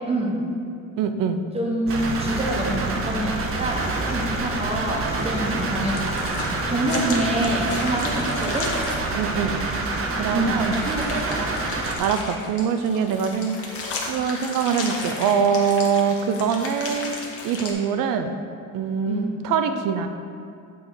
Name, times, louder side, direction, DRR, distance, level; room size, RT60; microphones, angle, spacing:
voice 1, 0.1-0.4 1.5-6.3 6.7-8.7 10.3-11.4 19.1-19.3, right 1 dB, 15° right, -2 dB, 1.1 m, -26 dB
voice 2, 1.0-1.4 6.9-7.0 9.2-9.6 10.2-10.8 12.0-17.2 17.4-18.3 18.7-20.1, right 6 dB, 70° right, 8 dB, 0.6 m, -23 dB
sound 1, 1.9-12.0, right 3 dB, 40° right, 0.8 m, -27 dB
sound 2, 5.7-9.0 10.6-17.7, left 3 dB, 45° left, 1.1 m, -34 dB
8.6 x 3.7 x 4.9 m, 2.4 s
cardioid pair, 145°, 34 cm